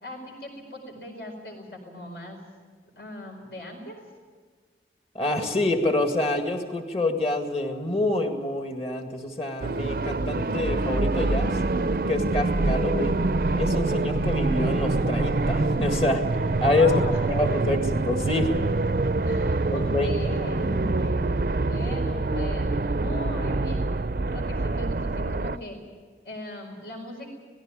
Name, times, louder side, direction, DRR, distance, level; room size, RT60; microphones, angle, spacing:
voice 1, 0.0-2.4 3.0-4.0 16.6-17.2 19.2-23.8 24.3-25.8 26.2-27.3, left 1 dB, 70° left, 2 dB, 4.6 m, -39 dB
voice 2, 5.1-11.6 12.1-13.1 13.5-16.2 16.6-16.9 17.3-17.8 18.0-18.5 19.7-20.6, left 2 dB, 35° left, 4 dB, 1.9 m, -26 dB
sound 1, 9.6-25.6, right 2 dB, 55° right, 0.5 m, -25 dB
18.5 x 15.5 x 9.3 m, 1.5 s
head